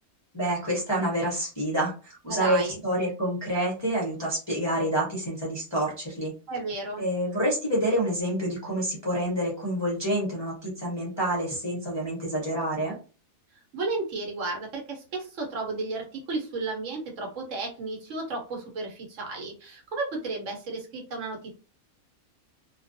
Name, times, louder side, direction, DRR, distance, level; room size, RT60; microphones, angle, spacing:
voice 1, 0.3-6.3 7.0-12.9, right 1 dB, 30° left, -5 dB, 0.5 m, -28 dB
voice 2, 2.2-2.8 6.5-7.1 13.7-21.5, right 3 dB, 65° right, 1 dB, 1.0 m, -33 dB
2.2 x 2.2 x 2.5 m, 0.35 s
omnidirectional pair, 1.5 m